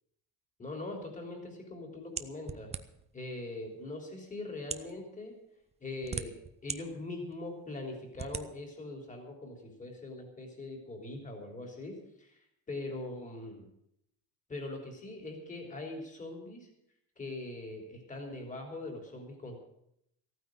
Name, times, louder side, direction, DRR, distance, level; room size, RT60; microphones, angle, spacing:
voice 1, 0.6-2.7 3.1-5.3 5.8-6.3 6.6-12.4 12.7-13.7 14.5-16.7 17.2-19.6, left 2 dB, 20° left, 2 dB, 3.5 m, -42 dB
sound 1, 2.2-3.1 3.9-4.0 4.6-4.9 5.7-6.8 7.3-7.4 8.1-8.5, right 5 dB, 20° right, 0.6 m, -39 dB
15.0 x 9.3 x 7.8 m, 0.76 s
cardioid pair, 155°, 36 cm